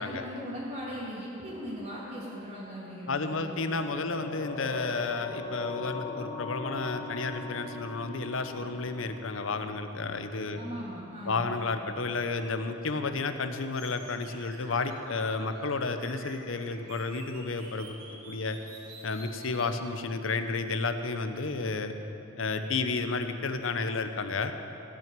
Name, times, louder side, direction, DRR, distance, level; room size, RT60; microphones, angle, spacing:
voice 1, 0.0-3.5 10.5-11.4, equal, 40° right, -10 dB, 2.3 m, -39 dB
voice 2, 3.1-10.6 11.3-18.0 18.3-18.6 19.0-21.9 22.4-24.5, left 3 dB, 70° left, 8 dB, 0.8 m, -32 dB
sound 1, 3.7-12.3 12.6-12.7, left 3 dB, 35° left, 1.1 m, -41 dB
sound 2, 13.7-19.7, right 1 dB, 85° right, 3.2 m, -49 dB
15.5 x 6.0 x 8.9 m, 2.9 s
head